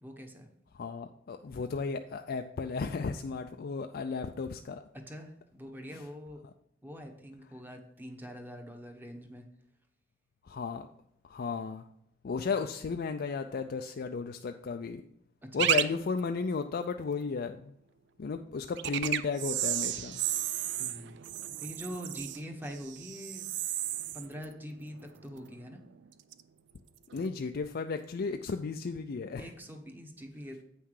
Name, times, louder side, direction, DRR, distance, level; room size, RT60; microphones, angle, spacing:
voice 1, 0.0-0.5 4.9-6.4 6.8-9.4 15.4-15.7 20.8-21.2 21.6-23.5 24.1-25.8 29.4-30.6, equal, 10° right, 4 dB, 1.1 m, -44 dB
voice 2, 0.7-4.8 5.9-6.1 10.4-10.9 11.2-11.9 12.2-15.0 15.5-17.7 18.2-20.2 27.1-29.5, left 4 dB, 50° left, 6 dB, 0.4 m, -34 dB
sound 1, 15.6-15.8 16.2-16.3 18.8-25.6 25.9-26.4 27.1-27.3, right 12 dB, 65° right, 0.5 m, -33 dB
8.4 x 5.8 x 4.8 m, 0.75 s
head